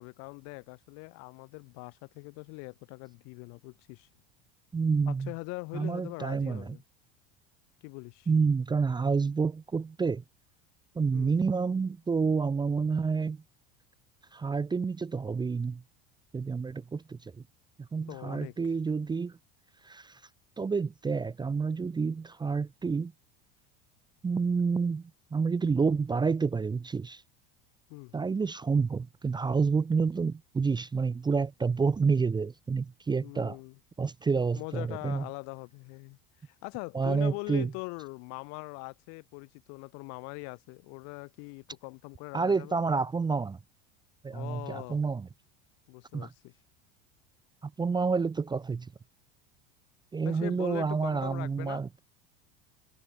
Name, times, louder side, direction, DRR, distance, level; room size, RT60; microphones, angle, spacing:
voice 1, 0.0-4.1 5.1-6.8 7.8-8.3 11.1-11.4 18.1-18.6 27.9-28.1 33.2-33.8 34.5-42.8 44.3-45.0 45.9-46.5 50.2-51.8, left 33 dB, 70° left, 3.8 m, -42 dB
voice 2, 4.7-5.3 5.7-6.7 8.3-10.2 11.0-13.4 14.3-15.8 16.3-17.3 17.8-19.3 19.8-20.2 20.6-23.1 24.2-25.0 25.3-27.2 28.1-33.6 34.0-35.2 36.9-37.7 42.3-43.6 44.2-45.3 46.1-46.3 47.6-48.9 50.1-52.0, right 5 dB, 15° right, 0.7 m, -29 dB
supercardioid pair, 105°, 29 cm